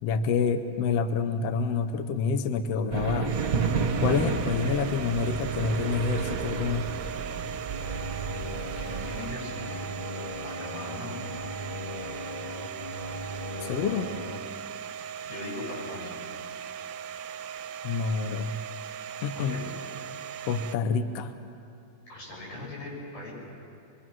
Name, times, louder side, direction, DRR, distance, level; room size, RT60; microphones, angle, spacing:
voice 1, 0.0-3.4 4.0-6.9 13.6-14.1 17.8-18.5 19.2-19.7 20.5-21.3, left 5 dB, 65° left, 9 dB, 1.7 m, -28 dB
sound 1, 2.9-9.3, right 5 dB, 45° right, 1.1 m, -31 dB
Domestic sounds home sounds, 3.2-20.8, right 8 dB, 75° right, 1.8 m, -39 dB
sound 2, 7.6-14.4, left 1 dB, 15° left, 2.2 m, -38 dB
voice 2, 8.8-9.8 10.4-11.2 15.2-16.2 19.3-19.7 22.1-23.3, left 2 dB, 85° left, -5 dB, 9.2 m, -39 dB
26.0 x 23.0 x 6.2 m, 2.7 s
omnidirectional pair, 3.5 m